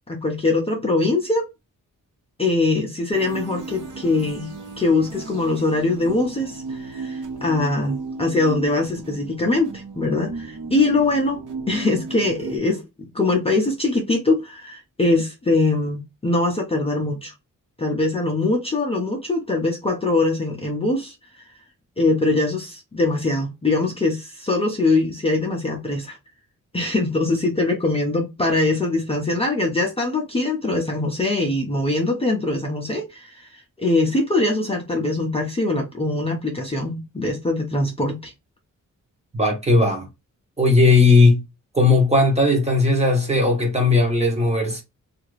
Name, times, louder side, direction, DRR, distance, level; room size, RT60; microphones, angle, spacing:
voice 1, 0.1-1.5 2.4-4.5 4.8-11.4 11.7-17.3 17.8-21.1 22.0-26.2 26.7-33.5 33.8-38.3, left 2 dB, 20° left, 0.5 m, -22 dB
sound 1, 3.1-12.6, right 4 dB, 70° right, 1.0 m, -35 dB
voice 2, 39.3-40.1 40.6-41.4 41.7-44.8, left 3 dB, 20° right, 0.8 m, -17 dB
2.8 x 2.5 x 3.0 m
wide cardioid pair, 170°, 32 cm